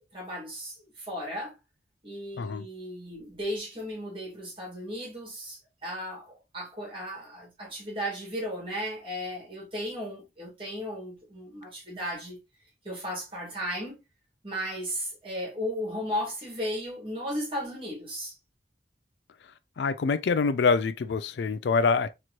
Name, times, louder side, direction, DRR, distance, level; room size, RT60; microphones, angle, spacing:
voice 1, 0.0-1.6 2.0-12.4 12.8-14.0 14.4-18.4, equal, 30° right, 2.2 m, -35 dB
voice 2, 19.8-22.1, left 4 dB, 75° left, 0.4 m, -25 dB
4.4 x 3.0 x 2.5 m
head